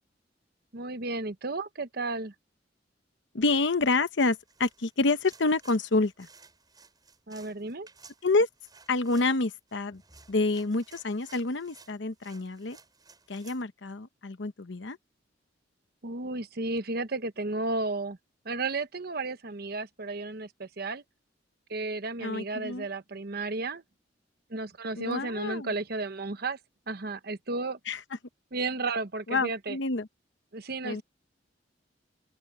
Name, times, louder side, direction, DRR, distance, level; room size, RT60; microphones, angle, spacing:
voice 1, 0.7-2.3 7.3-7.9 16.0-18.2 18.4-21.0 21.7-23.8 24.5-26.6 26.9-27.8 28.5-29.8 30.5-31.0, right 3 dB, 55° right, 1.1 m, -33 dB
voice 2, 3.3-6.3 8.2-8.5 8.9-10.0 10.3-12.8 13.3-15.0 22.2-22.9 25.0-25.7 27.9-28.0 29.3-30.1 30.8-31.0, left 3 dB, 70° left, 0.9 m, -28 dB
sound 1, 4.3-13.6, right 4 dB, 20° right, 7.4 m, -56 dB
open air
head